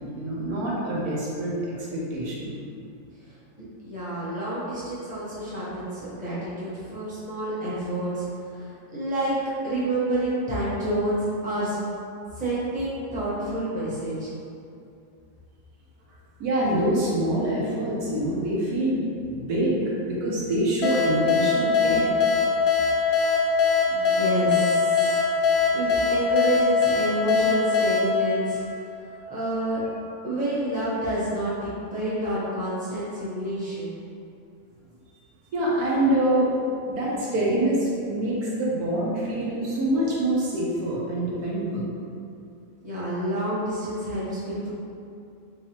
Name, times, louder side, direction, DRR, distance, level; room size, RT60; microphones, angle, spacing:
voice 1, 0.2-2.6 16.4-22.1 35.5-36.5 36.9-41.8, right 1 dB, 75° right, -5 dB, 1.2 m, -25 dB
voice 2, 3.8-9.4 9.6-11.8 12.3-14.3 23.9-25.2 25.7-28.6 29.3-29.8 30.2-33.9 42.8-44.7, right 1 dB, 5° right, -11 dB, 0.8 m, -28 dB
sound 1, 20.8-29.3, left 5 dB, 80° left, 0.5 m, -22 dB
3.7 x 3.2 x 2.9 m, 2.6 s
omnidirectional pair, 1.6 m